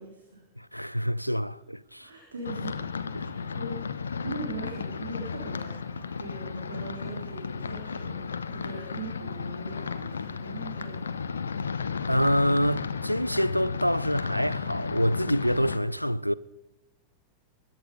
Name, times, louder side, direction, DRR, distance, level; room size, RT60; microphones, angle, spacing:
voice 1, 0.0-0.4 2.0-11.0, right 3 dB, 70° right, 3.3 m, -41 dB
voice 2, 0.6-2.1 3.1-3.3 12.1-16.3, equal, 90° left, 0.4 m, -26 dB
sound 1, 2.4-15.8, left 5 dB, 70° left, 0.8 m, -34 dB
21.0 x 10.5 x 5.3 m
figure-of-eight pair, 90°, 0 cm